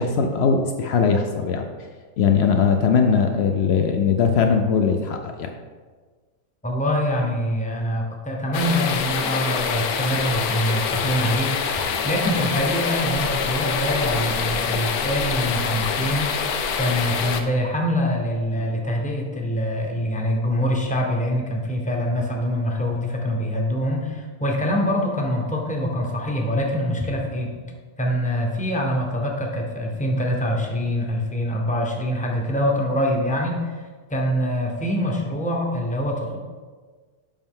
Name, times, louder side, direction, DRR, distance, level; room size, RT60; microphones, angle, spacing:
voice 1, 0.0-1.7 2.2-5.5, left 6 dB, 70° left, 4 dB, 0.6 m, -20 dB
voice 2, 6.6-16.3 16.8-27.5 28.0-33.8 34.1-36.4, equal, 10° left, 0 dB, 0.5 m, -24 dB
sound 1, 8.5-17.4, left 6 dB, 85° left, 1.1 m, -25 dB
7.0 x 5.3 x 3.7 m, 1.5 s
omnidirectional pair, 1.5 m